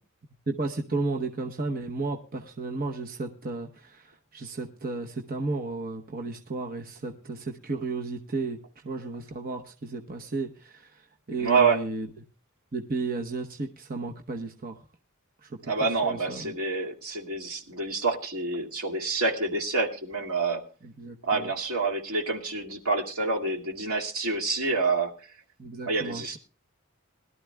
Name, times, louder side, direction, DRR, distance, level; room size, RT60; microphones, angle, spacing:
voice 1, 0.5-12.2 12.7-14.9 15.4-16.5 20.8-21.5 25.6-26.4, right 3 dB, 40° right, 2 dB, 0.9 m, -34 dB
voice 2, 11.4-11.8 15.7-20.6 21.2-25.1 25.9-26.4, right 4 dB, 80° right, 1 dB, 2.3 m, -27 dB
21.5 x 12.5 x 2.3 m, 0.37 s
head